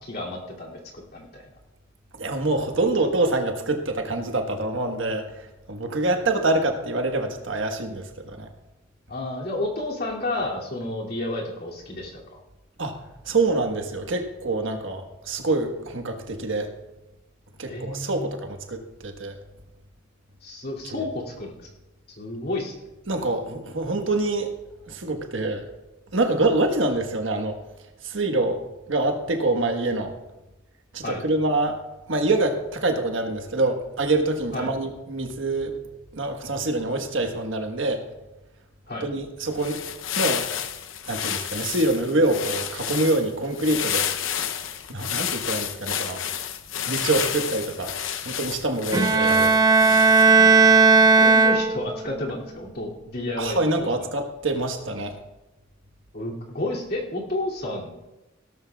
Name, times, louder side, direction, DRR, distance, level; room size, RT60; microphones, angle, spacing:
voice 1, 0.0-1.5 9.1-12.2 17.7-18.3 20.4-21.7 22.1-22.7 31.0-31.2 34.5-34.7 38.9-39.1 48.9-49.1 51.2-53.9 56.1-58.0, left 2 dB, 50° left, -3 dB, 2.6 m, -31 dB
voice 2, 2.2-8.5 12.8-12.9 13.2-16.7 17.6-19.4 20.9-21.1 23.1-24.5 24.8-25.7 26.1-27.6 28.0-28.6 28.9-30.1 30.9-31.8 32.1-35.7 36.1-38.0 39.0-39.8 40.2-40.5 41.1-44.1 44.9-46.2 46.8-47.9 48.2-49.5 53.4-55.2, right 2 dB, 70° right, 4 dB, 1.3 m, -25 dB
sound 1, 39.4-50.5, left 9 dB, 70° left, 0.7 m, -30 dB
Bowed string instrument, 48.9-52.1, right 4 dB, 20° right, 0.4 m, -16 dB
17.5 x 12.5 x 2.3 m, 1.0 s
head